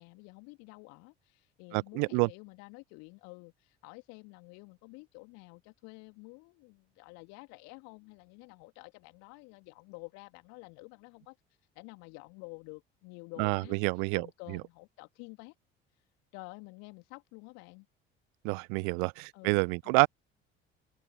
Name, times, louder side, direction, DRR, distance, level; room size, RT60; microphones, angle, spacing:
voice 1, 0.0-11.4 11.8-15.5 16.0-16.1 16.3-17.9 19.3-20.0, left 30 dB, 60° left, 2.2 m, -50 dB
voice 2, 1.7-2.3 13.4-14.3 18.4-20.1, right 40 dB or more, 55° right, 0.4 m, -28 dB
open air
figure-of-eight pair, 55°, 31 cm